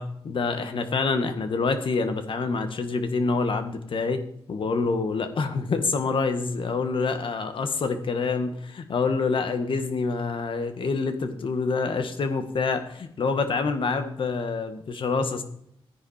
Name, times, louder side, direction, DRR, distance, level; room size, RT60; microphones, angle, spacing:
voice 1, 0.0-15.4, left 4 dB, 65° left, 8 dB, 1.6 m, -27 dB
14.0 x 9.8 x 4.3 m, 0.71 s
cardioid pair, 75°, 9 cm